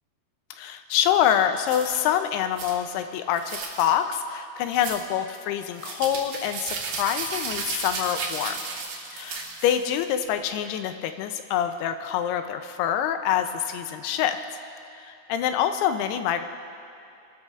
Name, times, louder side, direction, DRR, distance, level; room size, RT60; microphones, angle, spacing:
voice 1, 0.6-8.6 9.1-14.4 15.0-16.4, left 10 dB, 85° left, 8 dB, 2.6 m, -26 dB
sound 1, 1.7-2.0 2.6-2.8 3.4-3.9 4.7-5.1 5.8-10.0, right 4 dB, 65° right, 3.1 m, -34 dB
23.0 x 13.0 x 2.4 m, 2.7 s
omnidirectional pair, 4.6 m